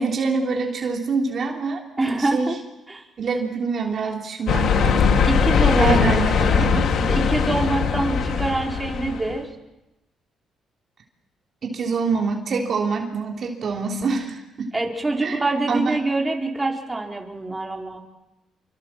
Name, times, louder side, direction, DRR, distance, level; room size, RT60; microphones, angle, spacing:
voice 1, 0.0-1.8 2.2-2.5 3.2-5.3 5.8-6.9 11.6-14.7 15.2-15.4 15.7-16.0, right 4 dB, 55° right, 1 dB, 3.3 m, -25 dB
voice 2, 2.0-2.6 2.9-3.1 5.3-6.7 7.0-9.5 14.7-18.0, right 2 dB, 15° right, 0 dB, 4.4 m, -25 dB
sound 1, 4.5-9.4, left 6 dB, 70° left, 2.1 m, -20 dB
27.5 x 24.5 x 7.5 m, 0.97 s
cardioid pair, 90°, 0 cm